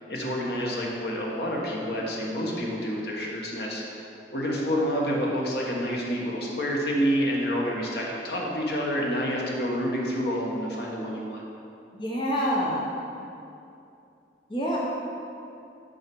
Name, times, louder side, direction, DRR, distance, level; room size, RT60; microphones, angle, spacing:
voice 1, 0.1-11.4, equal, 65° left, -2 dB, 1.4 m, -28 dB
voice 2, 11.9-12.8 14.5-14.8, equal, 25° left, -4 dB, 0.9 m, -26 dB
6.6 x 5.7 x 6.1 m, 2.7 s
head